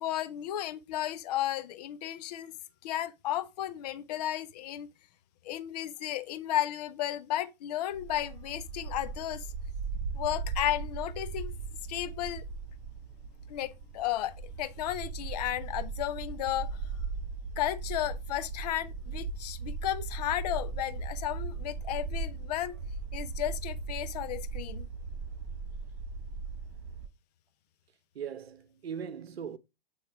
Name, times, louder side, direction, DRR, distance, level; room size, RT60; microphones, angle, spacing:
voice 1, 0.0-2.5 2.8-4.9 5.4-9.5 10.1-11.5 11.9-12.4 13.5-16.9 17.6-22.7 23.1-24.9, left 13 dB, 40° left, 0.7 m, -33 dB
Bark, 7.9-27.0, right 4 dB, 40° right, 4.8 m, -38 dB
voice 2, 28.1-29.6, right 7 dB, 80° right, 0.9 m, -39 dB
8.1 x 3.5 x 4.6 m
hypercardioid pair, 135°, 30 cm